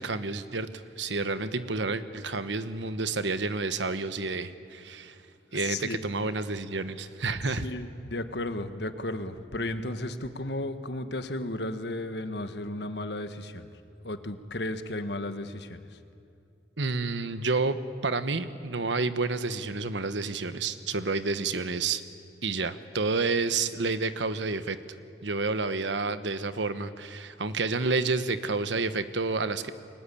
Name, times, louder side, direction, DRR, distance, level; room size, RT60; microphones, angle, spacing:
voice 1, 0.0-5.2 5.5-7.6 16.8-17.8 18.0-22.0 22.4-24.8 25.2-29.7, right 3 dB, 90° right, 11 dB, 1.3 m, -29 dB
voice 2, 5.5-6.0 7.5-16.0, left 1 dB, 75° left, 9 dB, 1.5 m, -34 dB
30.0 x 21.5 x 8.6 m, 2.5 s
head